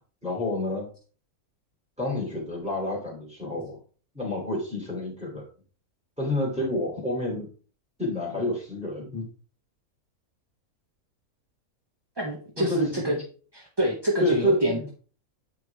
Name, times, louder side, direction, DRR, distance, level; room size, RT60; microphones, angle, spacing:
voice 1, 0.2-0.9 2.0-3.8 4.1-5.5 6.2-7.5 8.0-9.2 12.6-13.2 14.2-14.9, left 1 dB, 5° right, -3 dB, 2.7 m, -29 dB
voice 2, 12.2-13.2 13.5-14.9, right 1 dB, 25° right, 0 dB, 0.6 m, -26 dB
8.3 x 4.8 x 3.3 m, 0.40 s
omnidirectional pair, 1.5 m